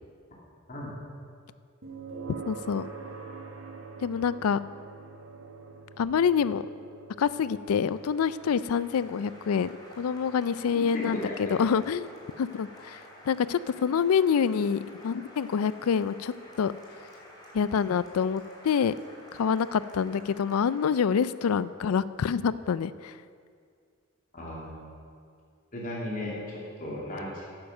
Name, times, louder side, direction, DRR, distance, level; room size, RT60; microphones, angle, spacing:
sound 1, 1.8-16.8, right 4 dB, 70° right, 1.5 m, -46 dB
voice 1, 2.5-2.9 4.0-4.6 6.0-6.6 7.2-9.7 10.0-12.1 12.4-13.0 13.3-16.7 17.5-18.9 19.3-23.1, left 6 dB, 75° left, 17 dB, 0.4 m, -26 dB
Applause, 7.1-21.6, left 1 dB, 20° left, 2.5 m, -51 dB
voice 2, 10.7-11.6 24.3-24.8 25.7-27.5, left 1 dB, 40° left, -5 dB, 2.8 m, -36 dB
10.5 x 9.2 x 6.4 m, 2.2 s
head